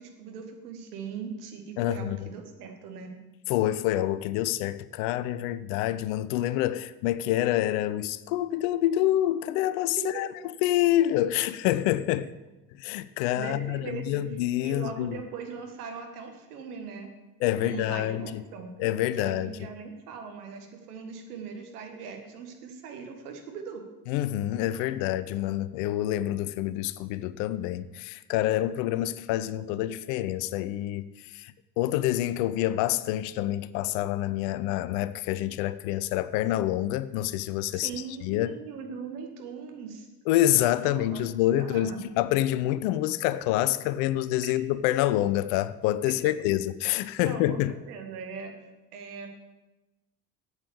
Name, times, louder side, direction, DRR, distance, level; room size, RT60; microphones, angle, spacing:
voice 1, 0.0-3.1 10.0-10.2 13.4-14.2 14.6-17.1 17.6-18.7 19.2-23.8 37.8-40.1 40.8-41.3 41.6-42.0 44.4-44.5 47.2-48.5 48.9-49.3, right 6 dB, 70° right, 1.7 m, -40 dB
voice 2, 1.8-2.2 3.5-10.3 10.6-12.3 12.8-15.2 17.4-18.4 18.8-19.6 24.1-37.9 38.2-38.6 40.3-47.7, left 13 dB, 55° left, 0.6 m, -27 dB
8.6 x 8.0 x 7.2 m
figure-of-eight pair, 55°, 47 cm